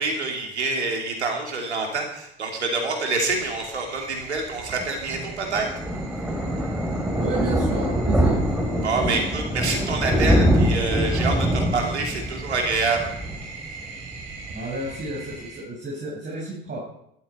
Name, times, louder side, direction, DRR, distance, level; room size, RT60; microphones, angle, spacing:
voice 1, 0.0-5.7 8.8-13.1, right 3 dB, 90° right, 1 dB, 3.1 m, -26 dB
sound 1, 3.2-15.6, right 4 dB, 50° right, 5.6 m, -42 dB
Thunder, 4.8-14.2 14.5-14.7 15.0-15.1 15.3-15.4, equal, 5° right, 3.6 m, -24 dB
voice 2, 7.2-8.4 8.7-9.2 14.5-16.8, right 2 dB, 30° right, -4 dB, 5.7 m, -32 dB
13.5 x 12.5 x 4.5 m, 0.75 s
hypercardioid pair, 75°, 33 cm